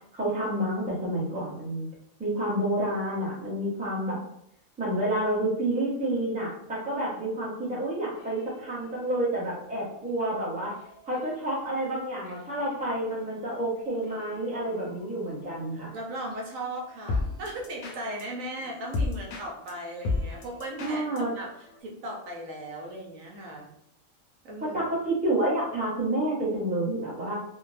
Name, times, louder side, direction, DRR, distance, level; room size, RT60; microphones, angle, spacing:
voice 1, 0.1-1.9 2.2-4.2 4.8-10.7 11.1-15.9 20.8-21.3 24.7-27.3, right 1 dB, 10° right, -6 dB, 0.6 m, -29 dB
sound 1, 8.1-21.8, left 3 dB, 65° left, 0.6 m, -38 dB
voice 2, 15.9-21.5 21.8-23.7 24.4-24.8, right 1 dB, 75° right, -1 dB, 1.0 m, -37 dB
2.6 x 2.1 x 3.1 m, 0.72 s
omnidirectional pair, 1.5 m